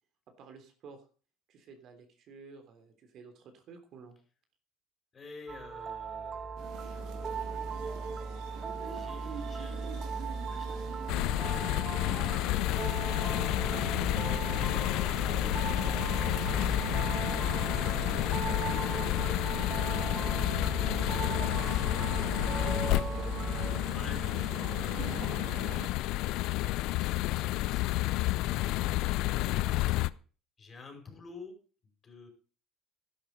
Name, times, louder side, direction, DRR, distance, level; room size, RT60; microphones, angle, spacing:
voice 1, 0.3-1.1 1.5-4.1, right 5 dB, 55° right, 6 dB, 3.3 m, -52 dB
voice 2, 5.1-7.7 8.8-14.0 23.4-25.5 30.6-31.6 31.8-32.3, left 4 dB, 30° left, 3 dB, 5.5 m, -53 dB
sound 1, 5.5-23.8, right 4 dB, 30° right, 1.7 m, -38 dB
sound 2, 6.6-25.9, right 7 dB, 70° right, 3.2 m, -44 dB
sound 3, 11.1-30.1, left 17 dB, 70° left, 0.5 m, -30 dB
12.0 x 11.0 x 5.3 m, 0.39 s
cardioid pair, 115°, 0 cm